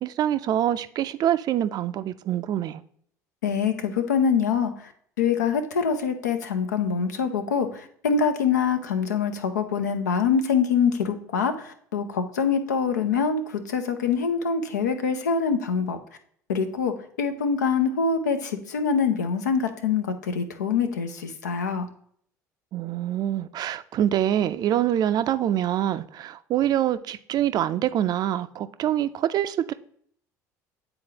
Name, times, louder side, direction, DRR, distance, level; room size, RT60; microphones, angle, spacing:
voice 1, 0.0-2.8 22.7-29.7, right 11 dB, 45° right, 0.4 m, -25 dB
voice 2, 3.4-4.9 5.2-16.0 16.5-21.9, left 6 dB, 85° left, 0.6 m, -25 dB
8.9 x 3.8 x 2.8 m
hypercardioid pair, 65°, 9 cm